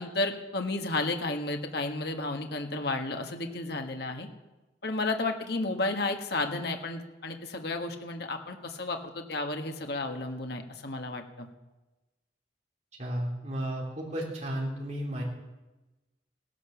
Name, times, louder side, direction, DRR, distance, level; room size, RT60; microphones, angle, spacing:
voice 1, 0.0-4.3 4.8-11.5, left 2 dB, 60° left, 4 dB, 1.5 m, -32 dB
voice 2, 13.0-15.2, right 1 dB, 40° right, -3 dB, 3.4 m, -33 dB
17.0 x 11.0 x 7.1 m, 1.1 s
head